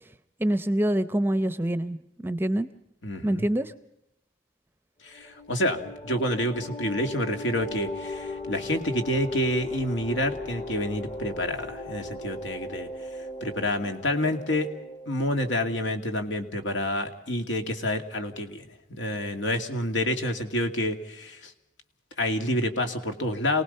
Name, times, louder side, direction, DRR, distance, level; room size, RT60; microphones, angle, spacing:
voice 1, 0.4-2.0 2.2-2.7 3.2-3.7, right 1 dB, 10° right, 12 dB, 0.7 m, -25 dB
voice 2, 3.0-3.4 5.0-12.9 13.4-14.7 15.1-21.5 22.2-23.6, left 1 dB, 75° left, 5 dB, 2.4 m, -28 dB
sound 1, 5.1-15.4, left 2 dB, 30° left, 1.3 m, -38 dB
28.5 x 19.0 x 5.6 m, 0.86 s
head